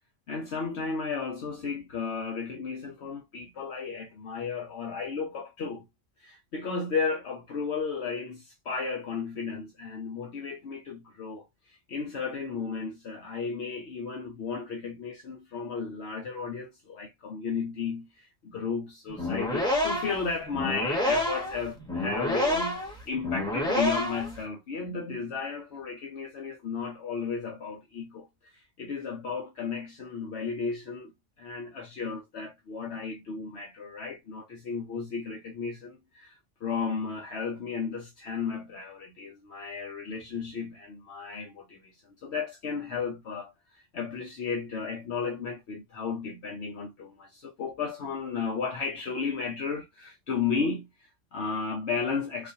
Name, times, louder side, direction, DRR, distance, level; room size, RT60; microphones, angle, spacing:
voice 1, 0.3-5.8 6.2-31.1 31.4-52.5, left 5 dB, 70° left, 1.1 m, -34 dB
sound 1, 19.1-24.4, left 1 dB, 5° left, 0.9 m, -28 dB
4.0 x 2.5 x 2.6 m
omnidirectional pair, 1.2 m